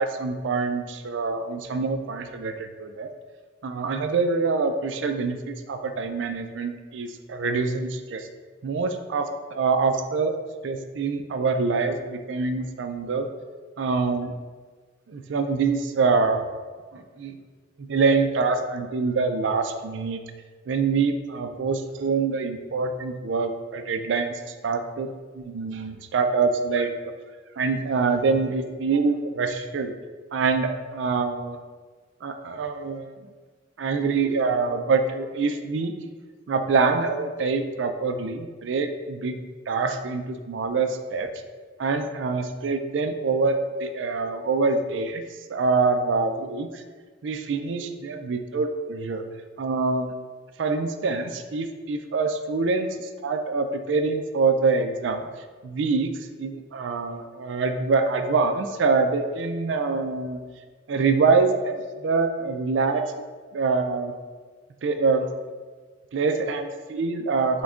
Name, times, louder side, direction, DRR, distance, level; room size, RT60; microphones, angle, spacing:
voice 1, 0.0-3.1 3.6-8.3 8.6-10.3 10.6-13.3 13.8-14.3 15.1-16.4 16.9-17.4 17.8-20.2 20.7-25.1 25.3-26.9 27.6-29.9 30.3-31.6 32.2-33.2 33.8-35.9 36.5-39.3 39.7-41.3 41.8-45.2 45.5-46.8 47.2-49.2 49.6-50.1 50.6-55.2 55.6-56.1 56.4-60.4 60.9-63.3 63.5-64.1 64.8-65.3 66.1-67.6, right 4 dB, 80° right, 7 dB, 0.4 m, -25 dB
6.1 x 2.3 x 3.6 m, 1.4 s
head